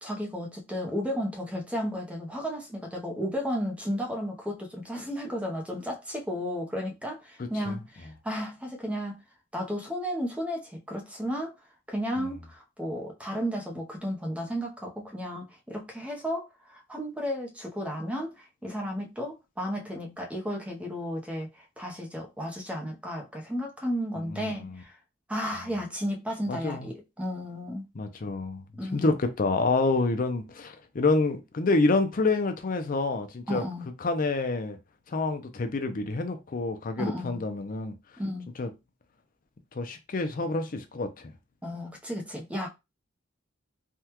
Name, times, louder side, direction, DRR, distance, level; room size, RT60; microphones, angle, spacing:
voice 1, 0.0-9.2 9.5-11.5 11.9-24.9 25.3-27.8 28.8-29.1 33.5-33.9 37.0-37.4 38.2-38.5 41.6-42.7, equal, 5° right, 0.7 m, -33 dB
voice 2, 7.4-7.8 12.2-12.3 24.2-24.7 26.5-26.9 27.9-28.6 28.9-33.6 34.0-34.8 35.1-37.9 38.6-38.7 39.7-41.3, left 3 dB, 45° left, 0.5 m, -28 dB
3.5 x 2.2 x 2.9 m
head